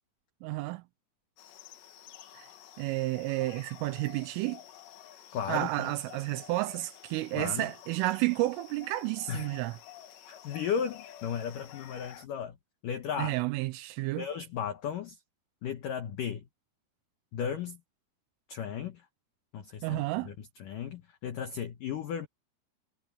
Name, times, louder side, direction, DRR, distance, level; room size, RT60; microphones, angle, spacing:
voice 1, 0.4-0.8 2.3-2.5 2.8-4.6 5.5-9.8 13.2-14.3 19.8-20.3, right 19 dB, 85° right, 3.3 m, -31 dB
sound 1, 1.4-12.3, left 11 dB, 65° left, 3.7 m, -51 dB
voice 2, 5.3-5.9 7.4-7.7 9.3-9.5 10.3-12.6 12.8-13.3 14.2-15.2 15.6-16.4 17.3-17.8 18.5-19.0 19.5-22.3, left 8 dB, 85° left, 1.8 m, -35 dB
omnidirectional pair, 5.8 m